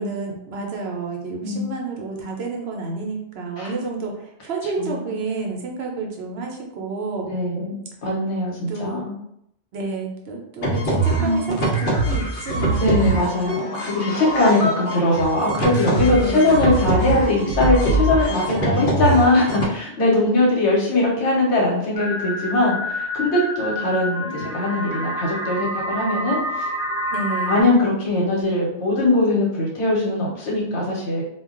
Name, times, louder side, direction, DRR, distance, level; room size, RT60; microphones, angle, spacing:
voice 1, 0.0-7.3 8.7-9.0 9.7-13.2 16.0-16.8 18.3-19.0 20.1-20.3 27.1-27.7, right 3 dB, 70° right, 1 dB, 0.8 m, -30 dB
voice 2, 7.2-9.1 11.2-11.6 12.7-26.7 27.5-31.2, left 2 dB, 85° left, -3 dB, 1.1 m, -21 dB
sound 1, 10.6-19.7, right 2 dB, 55° left, 0.8 m, -23 dB
sound 2, 21.9-27.6, equal, 5° right, 0.8 m, -28 dB
2.3 x 2.2 x 3.6 m, 0.75 s
omnidirectional pair, 1.1 m